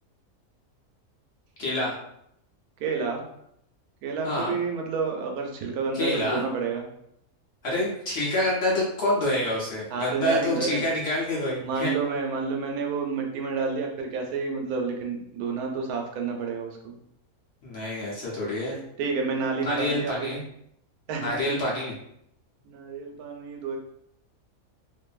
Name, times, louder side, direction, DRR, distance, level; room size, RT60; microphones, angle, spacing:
voice 1, 1.6-2.0 4.2-4.5 5.9-6.4 7.6-11.9 17.6-18.8 19.6-20.4 21.2-21.9, left 1 dB, 55° left, -6 dB, 0.9 m, -27 dB
voice 2, 2.8-3.2 4.0-6.8 9.9-10.8 11.6-16.9 19.0-20.3 21.1-21.4 22.6-23.8, right 4 dB, 85° right, 1 dB, 1.1 m, -29 dB
2.6 x 2.6 x 2.3 m, 0.75 s
omnidirectional pair, 1.6 m